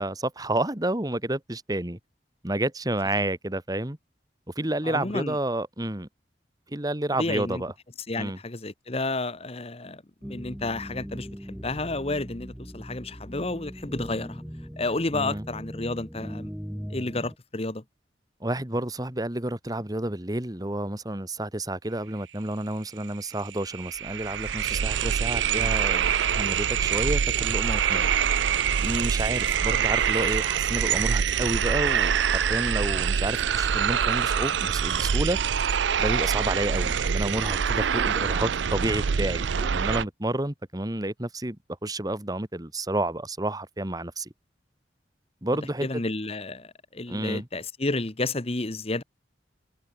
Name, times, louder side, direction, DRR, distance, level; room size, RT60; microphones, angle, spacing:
voice 1, 0.0-2.0 2.4-4.0 4.5-6.1 6.7-7.7 8.2-8.4 15.1-15.4 18.4-28.1 28.8-35.4 36.0-44.3 45.4-45.9 47.1-47.5, right 1 dB, 20° right, 1.7 m, -30 dB
voice 2, 4.8-5.4 7.2-7.6 8.1-14.4 14.8-16.5 16.9-17.8 25.5-25.7 29.7-29.8 45.8-49.0, left 2 dB, 35° left, 1.2 m, -31 dB
sound 1, 10.2-17.4, equal, ahead, 3.8 m, -39 dB
sound 2, 23.0-23.1 23.4-40.0, right 7 dB, 85° right, 0.5 m, -25 dB
head